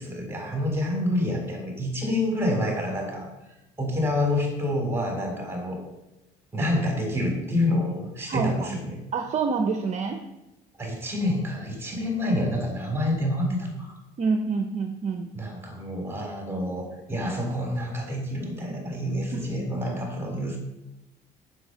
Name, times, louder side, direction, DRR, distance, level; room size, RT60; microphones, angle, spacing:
voice 1, 0.0-3.3 3.8-5.8 6.5-9.0 10.8-14.0 15.3-20.6, left 1 dB, 15° right, 1 dB, 3.7 m, -28 dB
voice 2, 8.3-8.8 9.1-10.2 14.2-15.3 19.3-19.4, right 5 dB, 45° right, 5 dB, 0.8 m, -27 dB
7.7 x 6.5 x 6.7 m, 0.95 s
cardioid pair, 110°, 17 cm